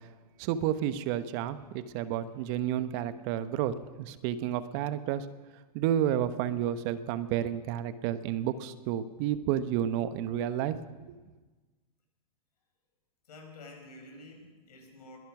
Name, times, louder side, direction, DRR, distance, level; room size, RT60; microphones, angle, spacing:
voice 1, 0.4-5.3 5.7-10.8, right 10 dB, 45° right, 12 dB, 1.0 m, -31 dB
voice 2, 13.3-15.2, left 2 dB, 80° left, 3 dB, 5.2 m, -49 dB
21.5 x 11.0 x 6.1 m, 1.3 s
hypercardioid pair, 120°, 20 cm